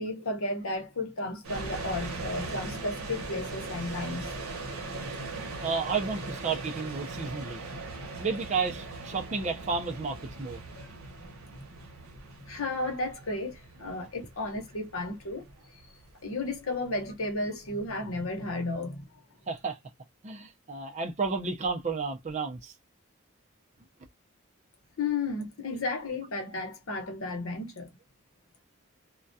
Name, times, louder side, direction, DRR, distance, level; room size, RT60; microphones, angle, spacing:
voice 1, 0.0-4.3 10.7-10.9 12.5-15.5 16.2-19.1 25.0-27.9, left 2 dB, 75° left, 0.9 m, -33 dB
sound 1, 1.4-18.4, right 3 dB, 85° right, 0.8 m, -40 dB
voice 2, 5.6-7.6 8.2-10.6 14.0-14.1 19.5-19.8 20.2-22.7, right 4 dB, 30° right, 0.4 m, -32 dB
2.2 x 2.2 x 2.6 m
head